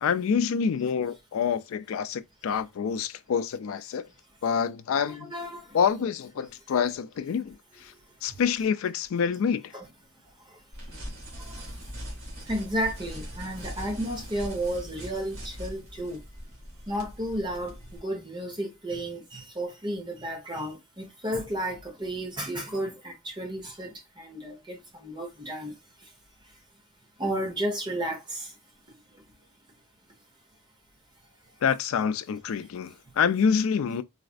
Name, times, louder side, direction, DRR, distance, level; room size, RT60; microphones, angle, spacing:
voice 1, 0.0-4.1 4.4-5.3 5.7-7.9 8.2-9.7 31.6-34.0, left 6 dB, 80° left, 0.3 m, -27 dB
voice 2, 5.1-5.6 9.7-9.9 11.5-11.6 12.5-16.2 16.9-17.7 18.0-25.7 27.2-28.5, right 1 dB, 20° right, 1.0 m, -32 dB
sound 1, 10.7-18.0, equal, 80° right, 1.8 m, -41 dB
4.1 x 2.4 x 2.4 m
head